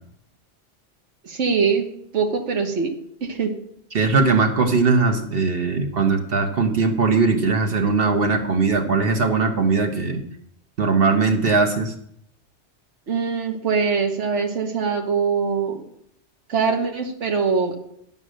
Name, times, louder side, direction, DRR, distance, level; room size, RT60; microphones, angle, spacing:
voice 1, 1.2-1.9 2.1-2.9 3.2-3.5 13.1-15.7 16.5-17.8, right 5 dB, 85° right, 4 dB, 1.5 m, -22 dB
voice 2, 3.9-10.2 10.8-11.9, right 4 dB, 55° right, 5 dB, 1.4 m, -20 dB
10.5 x 5.7 x 6.4 m, 0.72 s
omnidirectional pair, 1.2 m